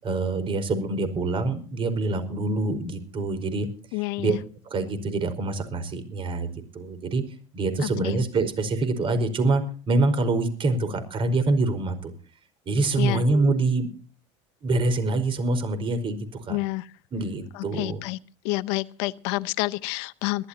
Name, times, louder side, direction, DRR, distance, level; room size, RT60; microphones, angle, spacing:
voice 1, 0.0-4.3 4.6-7.2 7.5-12.1 12.6-13.9 14.6-16.6 17.1-18.0, right 2 dB, 40° right, 4.9 m, -25 dB
voice 2, 3.9-4.4 7.8-8.2 13.0-13.2 16.5-16.9 17.5-18.2 18.4-20.5, left 21 dB, 75° left, 0.8 m, -29 dB
23.0 x 14.0 x 2.9 m
supercardioid pair, 115°, 14 cm